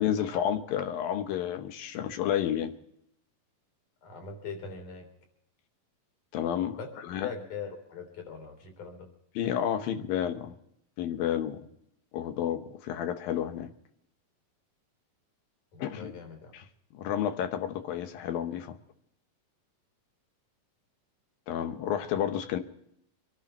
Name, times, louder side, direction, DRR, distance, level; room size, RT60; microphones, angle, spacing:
voice 1, 0.0-2.7 6.3-6.8 7.1-7.3 9.4-10.5 11.0-11.7 12.1-13.7 15.8-16.2 16.5-16.6 16.9-18.8 21.5-22.6, left 10 dB, 80° left, 2.8 m, -30 dB
voice 2, 4.0-5.1 6.8-9.1 15.7-16.5, left 5 dB, 60° left, 4.7 m, -41 dB
25.0 x 11.5 x 4.3 m
omnidirectional pair, 4.1 m